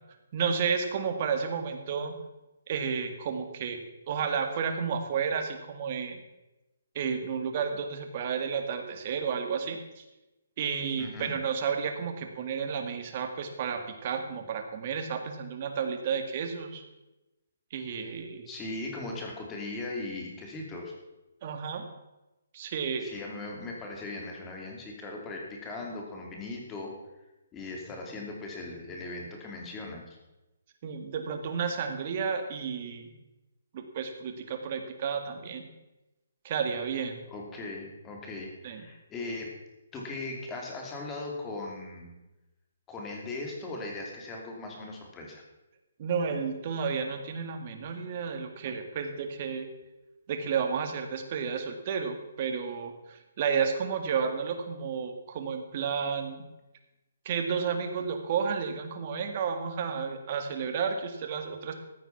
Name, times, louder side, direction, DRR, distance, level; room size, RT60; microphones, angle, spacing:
voice 1, 0.3-2.2 2.7-3.8 4.1-6.2 7.0-10.0 10.6-16.8 17.7-18.5 21.4-21.9 22.5-23.1 30.8-33.1 33.7-35.7 36.4-37.2 38.6-38.8 46.0-49.7 50.3-56.4 57.3-61.7, right 6 dB, 40° right, 6 dB, 1.9 m, -32 dB
voice 2, 11.0-11.3 18.0-18.1 18.5-20.9 23.0-26.9 27.5-30.2 37.3-39.5 39.9-42.1 42.9-45.4, left 2 dB, 15° left, 0 dB, 2.9 m, -39 dB
15.0 x 9.2 x 5.9 m, 1.0 s
hypercardioid pair, 155°, 0 cm